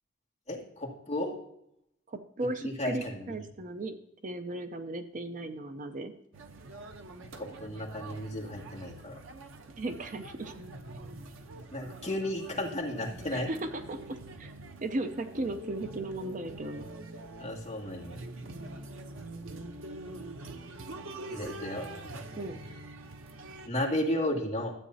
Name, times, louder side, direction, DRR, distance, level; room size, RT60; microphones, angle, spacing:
voice 1, 0.5-1.3 2.6-3.3 7.4-9.2 11.7-13.5 17.4-18.2 21.3-22.4 23.7-24.7, left 1 dB, 30° left, -2 dB, 2.1 m, -34 dB
voice 2, 2.1-3.9 4.2-6.1 9.8-10.5 13.3-14.5 14.8-16.9 22.4-22.6, right 2 dB, 40° right, 8 dB, 0.6 m, -36 dB
sound 1, 6.3-23.7, right 2 dB, 85° right, 0.8 m, -45 dB
13.0 x 8.3 x 2.7 m, 0.76 s
head